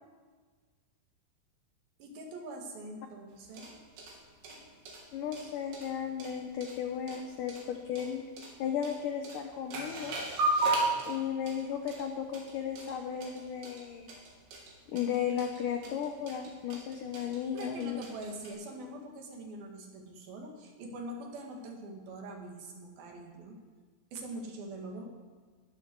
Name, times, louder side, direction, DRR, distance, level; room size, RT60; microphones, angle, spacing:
voice 1, 2.0-3.7 17.2-23.6 24.1-25.1, right 1 dB, 60° right, 1 dB, 3.6 m, -43 dB
sound 1, 3.3-18.5, right 2 dB, 85° right, 4.9 m, -37 dB
voice 2, 5.1-8.2 8.6-10.2 11.1-14.1 14.9-18.0, left 8 dB, 80° left, 4 dB, 1.9 m, -35 dB
20.0 x 13.0 x 4.7 m, 1.4 s
omnidirectional pair, 5.0 m